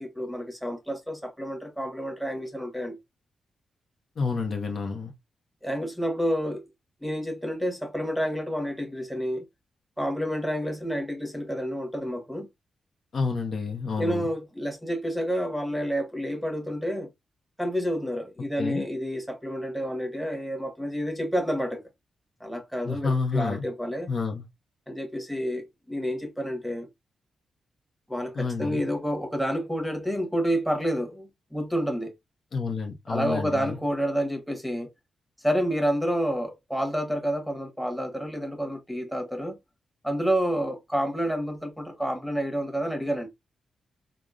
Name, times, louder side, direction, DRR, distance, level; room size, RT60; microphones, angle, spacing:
voice 1, 0.0-3.0 5.6-6.7 7.0-9.4 10.0-12.5 14.0-17.1 17.6-21.8 22.4-24.1 24.9-26.9 28.1-32.1 33.1-34.9 35.4-39.6 40.0-43.3, equal, ahead, 1.0 m, -29 dB
voice 2, 4.2-5.1 13.1-14.3 18.6-18.9 22.8-23.7 24.1-24.4 28.3-28.8 32.5-33.8, left 4 dB, 60° left, 0.7 m, -29 dB
3.6 x 2.0 x 2.3 m
cardioid pair, 55°, 0 cm